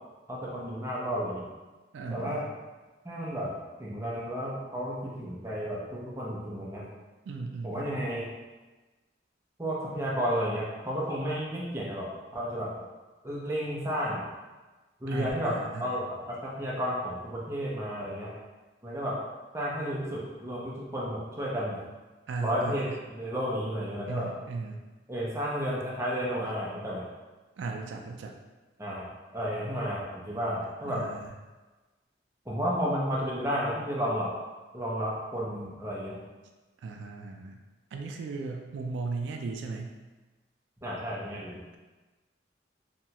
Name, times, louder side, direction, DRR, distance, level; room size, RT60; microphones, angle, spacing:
voice 1, 0.3-1.5 2.1-2.4 3.0-3.5 3.8-6.8 7.6-8.3 9.6-12.7 13.2-14.2 15.0-18.3 18.8-19.2 19.5-21.8 22.4-24.3 25.1-27.0 28.8-29.1 29.3-31.0 32.5-34.3 34.7-36.2 40.8-41.8, equal, 15° right, -6 dB, 0.5 m, -32 dB
voice 2, 1.9-2.5 7.3-8.0 15.1-15.9 22.3-22.9 24.1-24.9 27.6-28.4 30.8-31.3 36.8-37.6 37.9-40.0, right 4 dB, 90° right, 3 dB, 0.3 m, -37 dB
2.9 x 2.3 x 2.8 m, 1.2 s
head